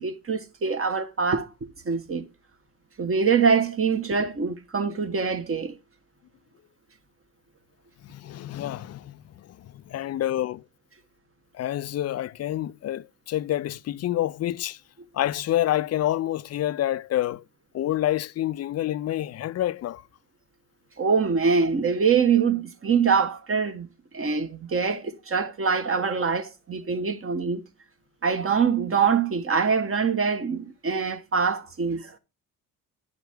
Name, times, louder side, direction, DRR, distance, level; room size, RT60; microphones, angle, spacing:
voice 1, 0.0-1.5 1.8-2.3 3.0-5.7 21.0-23.9 24.1-27.6 28.2-32.1, right 5 dB, 30° right, 1.3 m, -24 dB
voice 2, 8.0-10.6 11.5-14.8 15.1-17.4 17.7-20.0, left 13 dB, 40° left, 0.4 m, -28 dB
10.0 x 5.9 x 3.5 m
hypercardioid pair, 60°, 42 cm